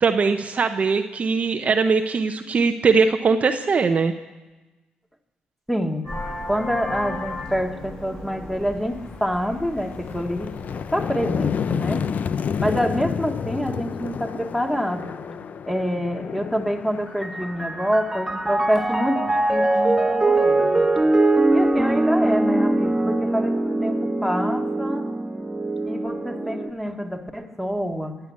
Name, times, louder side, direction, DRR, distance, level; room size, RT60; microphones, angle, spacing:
voice 1, 0.0-4.1, right 4 dB, 45° right, 7 dB, 0.8 m, -20 dB
voice 2, 5.7-6.1 6.5-10.5 10.9-12.1 12.6-15.1 15.7-20.9 21.5-25.1 25.9-28.2, equal, 5° left, 3 dB, 1.9 m, -26 dB
Vehicle horn car horn honking, 6.0-11.1, left 2 dB, 30° left, 7.0 m, -35 dB
sound 1, 8.0-8.1 8.6-19.3, left 7 dB, 55° left, 0.5 m, -31 dB
Piano, 17.1-26.7, right 2 dB, 15° right, 1.5 m, -22 dB
17.0 x 8.0 x 8.4 m, 1.1 s
supercardioid pair, 65°, 3 cm